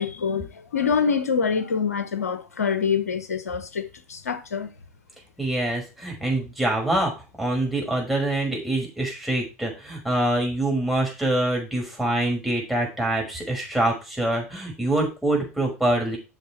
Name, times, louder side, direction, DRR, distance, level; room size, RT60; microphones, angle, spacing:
voice 1, 0.0-3.8 4.1-4.7, left 6 dB, 85° left, 1.2 m, -25 dB
voice 2, 5.4-7.1 7.4-16.2, right 1 dB, ahead, 5.5 m, -25 dB
8.2 x 6.8 x 4.5 m
hypercardioid pair, 80°, 8 cm